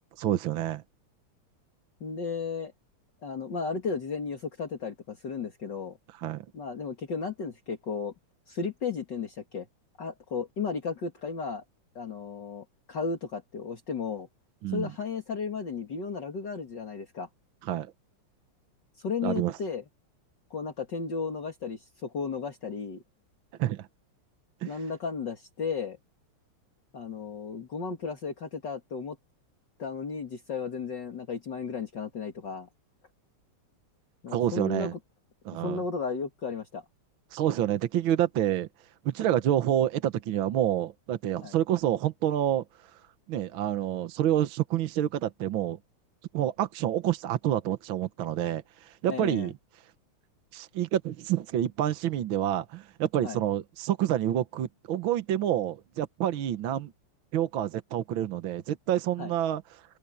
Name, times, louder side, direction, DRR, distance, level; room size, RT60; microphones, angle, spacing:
voice 1, 0.2-0.8 6.2-6.5 14.6-14.9 17.7-17.9 19.2-19.5 23.6-23.9 24.6-24.7 34.3-34.9 35.5-35.8 37.3-38.7 39.1-42.6 43.3-45.8 46.3-49.5 50.5-56.9 57.3-59.6, right 11 dB, 65° right, 1.7 m, -28 dB
voice 2, 2.0-2.7 3.2-6.0 6.5-8.1 8.5-9.7 10.0-11.6 12.0-14.3 14.7-17.3 19.0-19.8 20.5-23.0 24.6-26.0 26.9-29.2 29.8-32.7 34.2-35.0 35.6-36.8 41.4-41.6 49.1-49.5 53.2-53.4 59.2-59.3, left 5 dB, 55° left, 2.8 m, -34 dB
open air
omnidirectional pair, 2.4 m